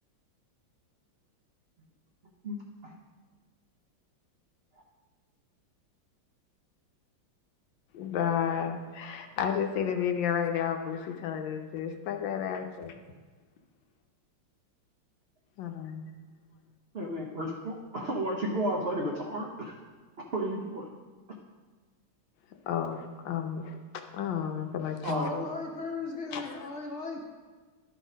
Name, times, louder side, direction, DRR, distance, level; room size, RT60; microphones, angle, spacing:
voice 1, 2.4-2.9 16.9-19.7 20.3-20.9 25.0-25.4, right 1 dB, 70° right, -1 dB, 0.5 m, -33 dB
voice 2, 7.9-12.9 15.6-16.1 22.7-23.8 24.1-25.3 26.3-26.5, left 8 dB, 70° left, 5 dB, 1.3 m, -32 dB
voice 3, 25.1-27.2, left 4 dB, 50° left, 0 dB, 0.8 m, -37 dB
11.5 x 4.1 x 5.0 m, 1.4 s
omnidirectional pair, 2.2 m